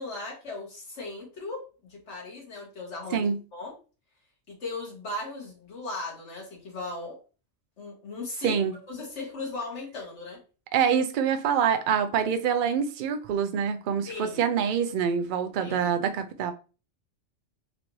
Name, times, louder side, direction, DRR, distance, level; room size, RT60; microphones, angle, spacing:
voice 1, 0.0-1.6 1.9-3.7 4.5-7.2 7.8-8.6 8.9-10.4 14.1-14.4 15.6-15.9, left 2 dB, 70° left, 1.7 m, -37 dB
voice 2, 10.7-16.5, right 7 dB, 60° right, 0.5 m, -25 dB
4.1 x 2.6 x 3.0 m
omnidirectional pair, 1.3 m